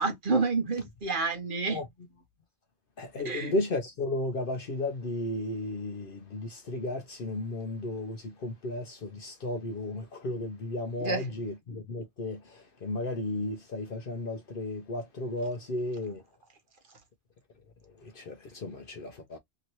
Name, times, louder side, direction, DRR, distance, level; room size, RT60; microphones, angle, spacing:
voice 1, 0.0-1.8 3.2-3.5 11.0-11.3 16.9-17.0, right 4 dB, 45° right, 0.9 m, -29 dB
voice 2, 3.0-16.2 18.0-19.4, left 2 dB, 55° left, 0.7 m, -34 dB
3.0 x 2.7 x 2.9 m
omnidirectional pair, 1.3 m